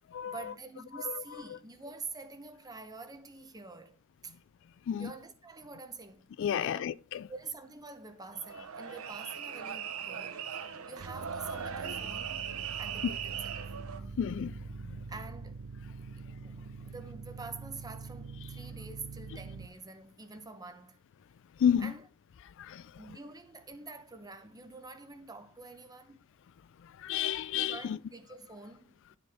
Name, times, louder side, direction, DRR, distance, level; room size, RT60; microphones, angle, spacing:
voice 1, 0.3-4.0 4.2-4.4 5.0-6.3 6.6-6.9 7.3-12.4 12.8-13.7 15.1-15.6 16.4-21.0 21.8-22.1 22.9-26.2 27.5-29.2, right 4 dB, 20° right, 0.8 m, -46 dB
voice 2, 6.4-7.3 14.2-14.5 14.8-15.0 21.6-21.9 22.6-22.8 27.0-28.0, left 9 dB, 60° left, 0.3 m, -31 dB
sound 1, 8.3-14.0, right 7 dB, 85° right, 0.9 m, -39 dB
sound 2, 11.0-19.7, right 4 dB, 70° right, 0.6 m, -44 dB
11.0 x 5.0 x 3.5 m
head